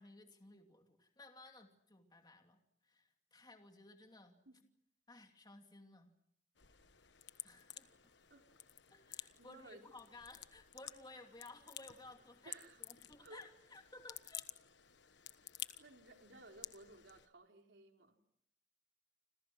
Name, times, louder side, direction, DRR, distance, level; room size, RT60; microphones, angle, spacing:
voice 1, 0.0-4.4 5.1-6.1 7.4-8.1 8.9-14.5, left 2 dB, 25° left, 4 dB, 2.8 m, -57 dB
sound 1, 6.5-17.3, left 12 dB, 70° left, 1.3 m, -53 dB
voice 2, 9.4-9.9 12.5-12.8 13.2-13.4 15.8-18.2, right 2 dB, 70° right, 3 dB, 4.0 m, -58 dB
30.0 x 26.5 x 6.2 m, 0.71 s
head